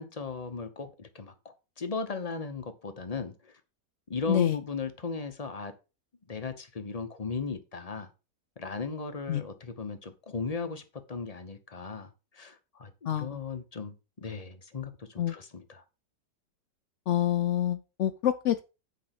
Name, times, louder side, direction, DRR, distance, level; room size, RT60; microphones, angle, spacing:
voice 1, 0.0-3.6 4.1-5.7 6.3-8.1 8.6-15.8, left 4 dB, 30° left, 0.7 m, -37 dB
voice 2, 17.1-18.6, left 11 dB, 85° left, 0.6 m, -27 dB
8.5 x 5.0 x 5.9 m
omnidirectional pair, 1.9 m